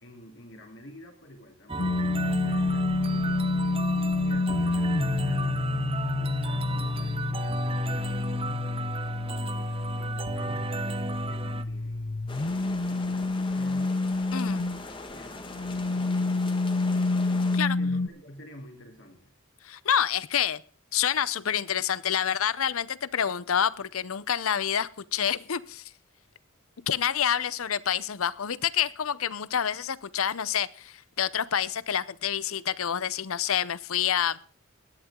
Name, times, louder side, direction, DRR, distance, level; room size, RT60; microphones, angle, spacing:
voice 1, 0.0-3.5 4.2-5.9 6.2-10.7 11.3-14.0 15.1-16.1 17.8-19.3, equal, 60° left, 3.6 m, -49 dB
sound 1, 1.7-11.6, right 3 dB, 25° right, 0.7 m, -34 dB
sound 2, 1.8-14.9 15.4-18.1, left 3 dB, 45° left, 0.6 m, -28 dB
sound 3, 12.3-17.6, left 2 dB, 25° left, 1.6 m, -41 dB
voice 2, 14.3-14.7 17.5-17.8 19.6-20.6 20.9-25.8 26.9-34.4, left 9 dB, 85° left, 0.7 m, -28 dB
17.0 x 11.0 x 3.7 m
head